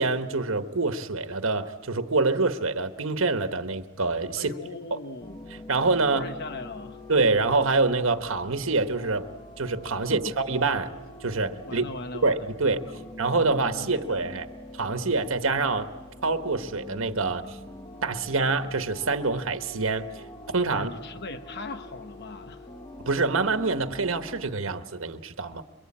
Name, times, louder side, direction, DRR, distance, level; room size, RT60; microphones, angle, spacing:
voice 1, 0.0-4.5 5.7-6.3 7.1-9.3 9.6-10.9 11.2-11.8 12.2-12.8 13.2-14.5 14.8-15.9 16.2-17.6 18.0-20.1 20.5-20.9 23.1-25.6, right 3 dB, 85° right, 1.3 m, -26 dB
voice 2, 4.4-5.4 6.1-7.0 10.0-10.3 11.7-12.5 12.9-13.0 13.8-14.4 20.7-22.7, left 3 dB, 55° left, 1.0 m, -39 dB
sound 1, 5.2-24.5, left 1 dB, 25° left, 1.3 m, -44 dB
27.0 x 23.0 x 8.7 m
head